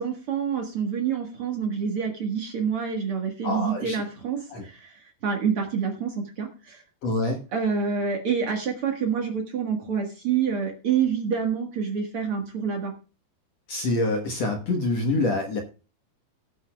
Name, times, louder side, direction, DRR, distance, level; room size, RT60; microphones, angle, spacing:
voice 1, 0.0-6.8 7.5-12.9, right 6 dB, 80° right, 2 dB, 1.2 m, -27 dB
voice 2, 3.4-4.0 4.5-4.6 7.0-7.4 13.7-15.6, left 2 dB, 75° left, 3 dB, 1.5 m, -26 dB
18.0 x 9.1 x 2.3 m, 0.34 s
omnidirectional pair, 5.1 m